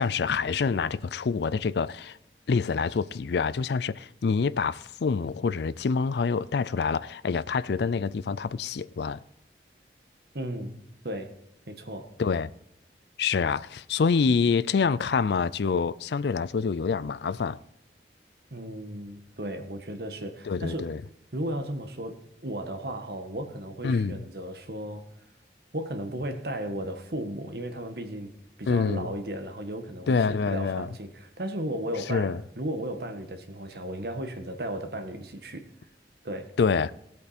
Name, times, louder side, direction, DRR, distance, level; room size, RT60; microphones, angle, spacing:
voice 1, 0.0-2.2 2.5-9.2 12.2-12.5 13.2-17.6 20.5-21.0 23.8-24.2 28.7-29.1 30.1-30.9 32.1-32.4 36.6-36.9, left 5 dB, 70° left, 0.4 m, -26 dB
voice 2, 10.3-10.8 11.0-11.4 11.7-12.1 18.5-20.9 21.3-25.1 25.7-35.7 36.2-36.5, right 1 dB, 60° right, 1.5 m, -35 dB
17.5 x 8.5 x 4.3 m
head